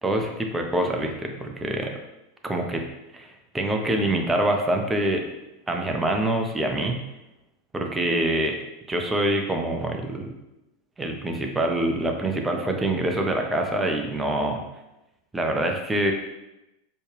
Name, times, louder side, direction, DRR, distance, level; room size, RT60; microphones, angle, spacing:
voice 1, 0.0-2.0 2.4-2.8 3.1-5.2 5.7-7.0 7.7-8.6 8.9-10.3 11.0-14.6 15.3-16.1, right 1 dB, 15° right, 3 dB, 0.6 m, -25 dB
4.3 x 2.4 x 3.3 m, 0.93 s
figure-of-eight pair, 85°, 0 cm